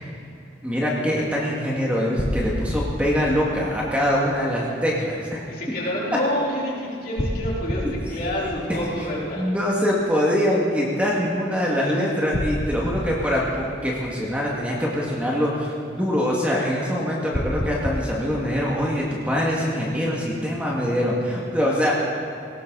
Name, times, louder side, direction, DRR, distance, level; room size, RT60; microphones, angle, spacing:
voice 1, 0.6-5.4 8.4-8.9 9.4-21.9, equal, 5° right, -4 dB, 2.1 m, -24 dB
sound 1, 2.2-4.2 7.2-9.5 12.3-14.4 17.3-18.0, equal, 25° left, 1.0 m, -29 dB
voice 2, 5.5-9.4 11.8-12.1, left 1 dB, 50° left, -5 dB, 3.8 m, -28 dB
18.5 x 17.5 x 4.1 m, 2.6 s
head